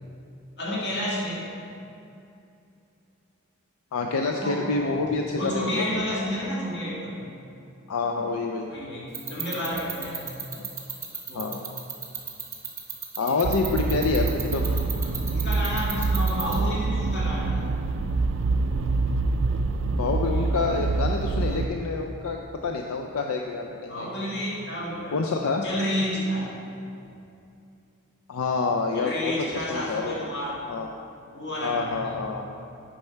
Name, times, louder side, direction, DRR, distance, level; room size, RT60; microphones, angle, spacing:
voice 1, 0.6-1.5 4.4-5.0 5.3-7.2 8.7-10.2 11.3-11.5 13.2-13.4 14.9-17.7 23.9-25.2 25.6-26.5 28.9-30.6 31.3-32.2, equal, 55° left, -6 dB, 2.0 m, -31 dB
voice 2, 3.9-6.3 7.9-8.7 10.5-10.7 11.3-11.7 13.2-14.8 20.0-24.1 25.1-25.6 28.3-30.3 30.7-30.9 31.6-32.5, left 4 dB, 80° left, 2 dB, 0.5 m, -27 dB
sound 1, 9.1-16.6, right 7 dB, 15° right, 0.7 m, -32 dB
sound 2, 13.4-21.7, right 3 dB, 60° right, 0.3 m, -26 dB
9.0 x 5.5 x 4.5 m, 2.7 s
head